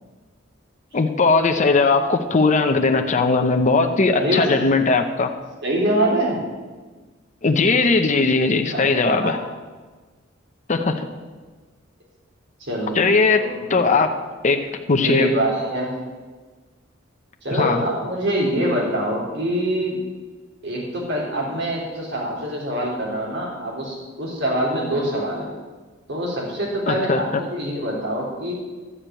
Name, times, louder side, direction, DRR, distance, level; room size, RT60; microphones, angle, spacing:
voice 1, 0.9-5.4 7.4-9.4 10.7-11.1 12.9-14.1 14.4-15.3 17.5-17.8 26.9-27.2, left 3 dB, 40° left, 5 dB, 0.7 m, -19 dB
voice 2, 4.2-4.5 5.6-6.5 8.7-9.4 12.6-13.0 13.4-13.8 14.9-16.0 17.4-20.0 20.6-25.5 26.1-28.5, right 1 dB, 60° right, -3 dB, 3.6 m, -24 dB
12.5 x 5.0 x 8.8 m, 1.3 s
head